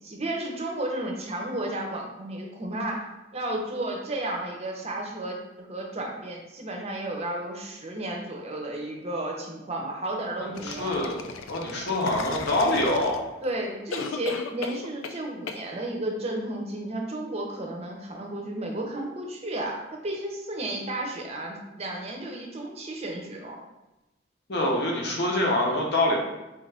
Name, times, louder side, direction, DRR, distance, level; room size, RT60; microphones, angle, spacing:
voice 1, 0.0-3.1 3.3-11.0 13.4-23.6, right 1 dB, 30° right, 0 dB, 0.6 m, -33 dB
voice 2, 10.4-11.2 11.5-13.3 24.5-26.2, left 1 dB, 55° left, -1 dB, 0.9 m, -25 dB
sound 1, 10.6-13.4 13.9-15.2 15.5-15.6, left 4 dB, 90° left, 0.4 m, -36 dB
4.5 x 2.5 x 3.3 m, 1.0 s
head